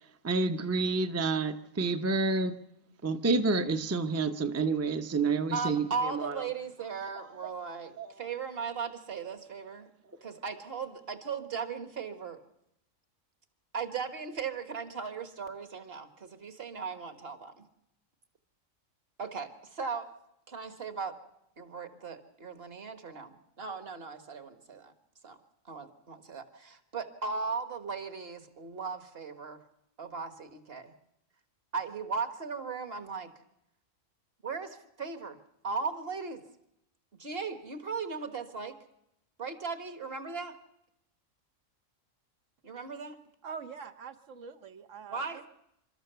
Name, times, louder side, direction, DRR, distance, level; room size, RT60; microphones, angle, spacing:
voice 1, 0.2-2.5 3.0-6.5 8.0-8.1, right 3 dB, 15° right, 0.6 m, -29 dB
voice 2, 5.5-9.9 10.2-12.4 13.7-17.5 19.2-20.1 20.5-21.2 21.6-24.9 25.2-25.4 25.7-29.6 30.0-30.9 31.7-33.3 34.4-35.4 35.6-36.4 37.2-38.8 39.4-40.6 42.6-43.2 45.1-45.4, right 5 dB, 50° right, 1.6 m, -37 dB
voice 3, 43.4-45.5, right 6 dB, 70° right, 1.2 m, -44 dB
29.5 x 13.0 x 6.8 m
omnidirectional pair, 1.3 m